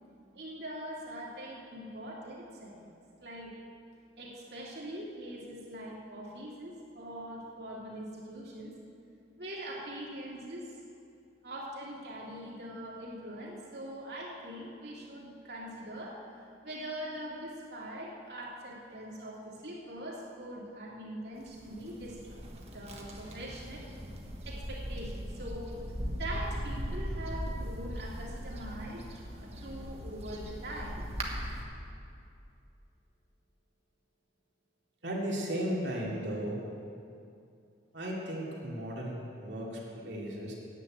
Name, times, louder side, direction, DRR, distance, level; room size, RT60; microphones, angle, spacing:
voice 1, 0.3-2.9 3.2-3.5 4.2-8.7 9.4-10.7 11.4-16.2 16.6-22.4 22.7-23.9 24.5-25.8 26.1-29.0 29.3-31.1, right 1 dB, 60° right, -4 dB, 2.7 m, -42 dB
sound 1, 21.4-31.6, equal, 35° right, 1.3 m, -39 dB
voice 2, 35.0-36.7 37.9-40.5, equal, 75° right, -3 dB, 2.5 m, -35 dB
9.9 x 8.2 x 8.8 m, 2.5 s
head